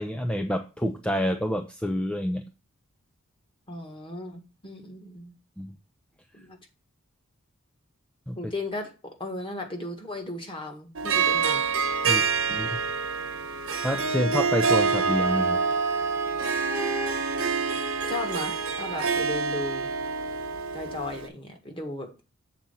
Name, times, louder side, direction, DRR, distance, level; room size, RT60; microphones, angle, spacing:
voice 1, 0.0-2.5 5.6-5.7 8.3-8.4 12.1-12.2 12.5-12.7 13.8-15.6, equal, 5° left, 5 dB, 0.5 m, -28 dB
voice 2, 3.7-5.3 6.3-6.6 8.3-11.6 12.0-12.2 18.1-19.9 20.7-22.3, left 2 dB, 25° left, 3 dB, 1.6 m, -36 dB
Harp, 11.0-21.3, right 5 dB, 75° right, 1.1 m, -27 dB
Wind instrument woodwind instrument, 14.7-19.1, right 5 dB, 15° right, 0.8 m, -34 dB
7.5 x 4.2 x 5.5 m, 0.31 s
head